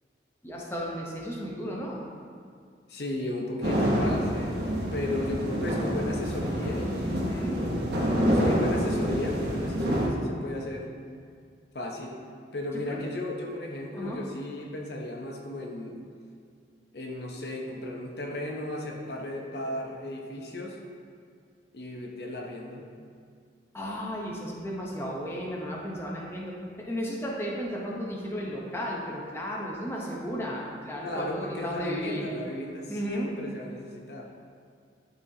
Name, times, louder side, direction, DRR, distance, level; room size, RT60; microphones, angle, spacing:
voice 1, 0.4-2.0 7.2-7.6 12.9-13.0 13.9-14.2 23.7-32.3 32.9-33.3, equal, 15° left, -4 dB, 0.8 m, -34 dB
voice 2, 2.9-4.6 4.9-10.9 11.7-12.2 12.5-16.0 16.9-20.8 21.7-22.9 31.0-34.3, left 1 dB, 65° left, 0 dB, 0.8 m, -35 dB
sound 1, 3.6-10.1, equal, 60° right, 0.9 m, -27 dB
11.5 x 4.2 x 2.8 m, 2.2 s
head